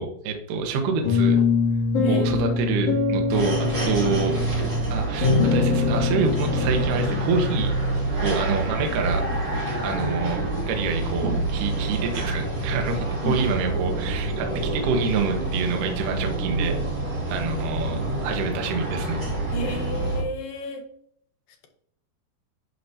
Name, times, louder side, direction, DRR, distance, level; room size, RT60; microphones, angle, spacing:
voice 1, 0.0-1.4 2.1-4.5 4.9-7.8 8.2-9.3 9.8-16.8 17.3-19.8, right 4 dB, 70° right, 3 dB, 2.3 m, -27 dB
sound 1, 1.0-8.1, left 4 dB, 35° left, 2.4 m, -24 dB
sound 2, 3.3-20.2, right 2 dB, 30° right, 2.4 m, -27 dB
voice 2, 19.5-20.8, left 2 dB, 70° left, 3 dB, 2.3 m, -31 dB
11.5 x 4.8 x 2.7 m, 0.64 s
omnidirectional pair, 4.7 m